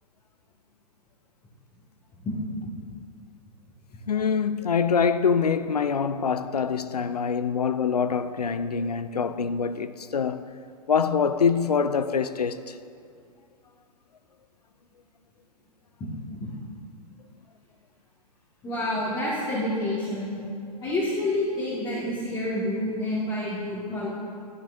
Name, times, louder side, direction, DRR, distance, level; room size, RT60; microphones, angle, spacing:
voice 1, 4.1-10.4 10.9-12.8, left 6 dB, 85° left, 0.4 m, -25 dB
voice 2, 18.6-20.4 20.8-24.1, left 1 dB, 20° left, 2.0 m, -28 dB
13.5 x 10.0 x 2.7 m
figure-of-eight pair, 105°, 20 cm